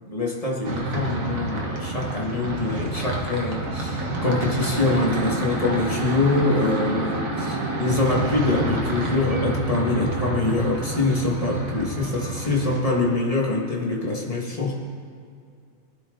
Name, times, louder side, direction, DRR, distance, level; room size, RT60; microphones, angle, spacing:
voice 1, 0.0-14.7, left 2 dB, 25° left, -1 dB, 2.0 m, -24 dB
sound 1, 0.6-12.8, right 2 dB, 70° right, 1.8 m, -28 dB
20.0 x 11.5 x 4.0 m, 2.3 s
omnidirectional pair, 1.5 m